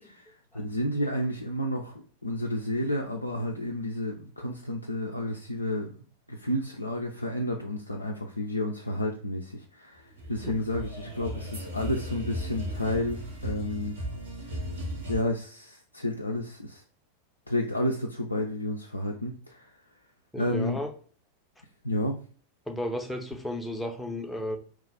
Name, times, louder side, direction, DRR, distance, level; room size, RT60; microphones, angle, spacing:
voice 1, 0.0-14.0 14.4-14.7 15.1-16.8 17.5-19.8 20.4-20.8 21.8-22.3, left 1 dB, 80° left, 0.3 m, -31 dB
sound 1, 10.0-15.2, equal, 65° right, 1.3 m, -36 dB
voice 2, 20.3-20.9 22.7-24.6, equal, 5° left, 0.6 m, -33 dB
2.9 x 2.3 x 3.6 m
figure-of-eight pair, 90°, 0 cm